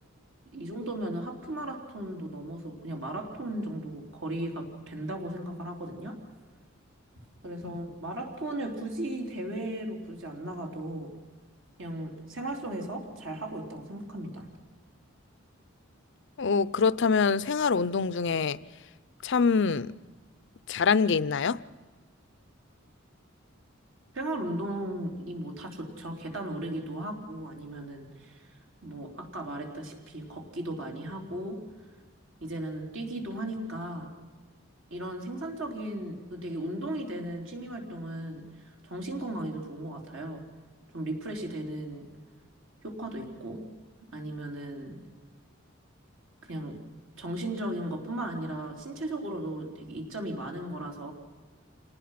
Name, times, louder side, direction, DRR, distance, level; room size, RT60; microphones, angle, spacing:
voice 1, 0.5-6.2 7.4-11.1 11.8-14.5 24.1-28.4 28.8-31.6 32.4-34.1 34.9-38.5 38.8-40.4 40.9-42.0 42.8-43.6 44.1-45.0 46.4-46.8 47.2-51.1, right 1 dB, 70° right, 3.9 m, -36 dB
voice 2, 16.4-18.6 19.2-19.9 20.7-21.6, left 5 dB, 60° left, 0.6 m, -25 dB
27.5 x 19.0 x 5.9 m
head